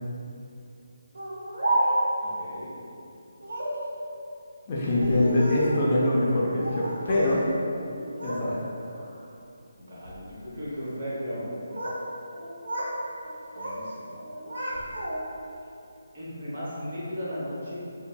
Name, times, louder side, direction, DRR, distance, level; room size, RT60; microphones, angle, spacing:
Speech, 1.1-2.2 3.4-3.8 4.8-5.9 6.6-7.4 7.7-8.4 8.8-9.2 9.9-10.2 11.3-12.0 12.3-13.0 13.2-13.8 14.2-15.4, right 1 dB, 80° right, 0.7 m, -31 dB
voice 1, 2.2-2.7 9.8-11.5 13.5-14.1 16.1-17.8, equal, 50° right, -9 dB, 1.0 m, -36 dB
voice 2, 4.7-7.4 8.2-8.6, left 1 dB, 30° left, -6 dB, 0.5 m, -24 dB
2.7 x 2.5 x 2.2 m, 2.6 s
figure-of-eight pair, 155°, 0 cm